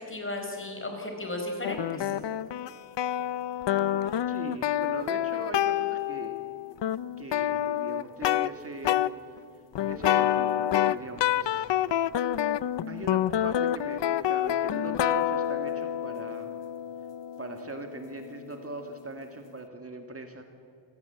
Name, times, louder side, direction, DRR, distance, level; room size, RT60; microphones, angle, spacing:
voice 1, 0.1-2.1, left 1 dB, 30° left, 3 dB, 4.7 m, -35 dB
sound 1, 1.6-8.5 8.9-9.1 9.8-18.8, left 11 dB, 75° left, 0.7 m, -28 dB
voice 2, 3.6-6.4 7.2-9.0 9.8-11.7 12.9-16.6 17.4-20.4, right 2 dB, 30° right, 5 dB, 1.8 m, -41 dB
27.0 x 17.5 x 8.0 m, 2.4 s
wide cardioid pair, 145°, 43 cm